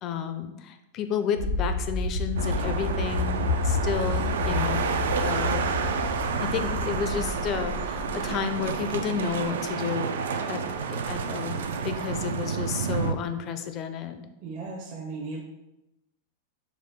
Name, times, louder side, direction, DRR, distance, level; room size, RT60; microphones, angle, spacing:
voice 1, 0.0-5.8 6.4-10.6 10.9-14.3, left 7 dB, 35° left, 8 dB, 0.4 m, -32 dB
sound 1, 1.4-9.5, left 3 dB, 90° left, 0.9 m, -30 dB
sound 2, 2.4-13.1, right 6 dB, 85° right, 0.3 m, -30 dB
voice 2, 14.4-15.4, right 3 dB, 45° right, -3 dB, 0.6 m, -36 dB
4.6 x 2.2 x 3.5 m, 0.93 s
supercardioid pair, 140°, 0 cm